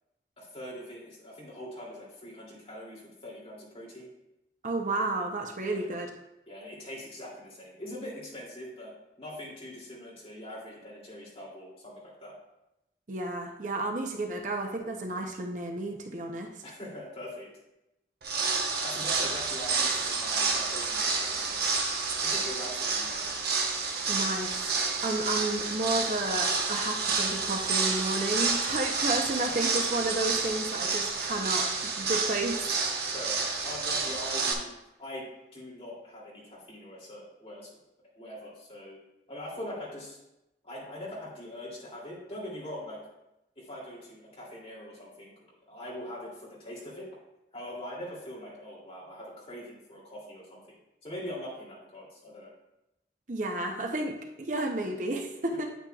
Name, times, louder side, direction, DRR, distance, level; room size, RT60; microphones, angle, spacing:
voice 1, 0.4-4.1 5.6-5.9 6.5-12.3 16.6-17.5 18.8-21.7 22.2-23.4 28.8-29.0 29.5-29.6 33.1-34.7 35.0-35.3 35.5-37.7 38.2-39.0 39.3-40.2 40.6-43.0 43.6-45.3 45.7-47.1 47.5-50.6 51.0-52.5, left 1 dB, 35° left, -5 dB, 2.6 m, -42 dB
voice 2, 4.6-6.1 13.1-16.5 24.1-24.7 25.0-32.8 53.3-55.7, right 2 dB, 45° right, 3 dB, 0.7 m, -32 dB
sound 1, 18.2-34.5, right 4 dB, 60° right, 1.0 m, -29 dB
8.9 x 8.6 x 2.3 m, 0.90 s
head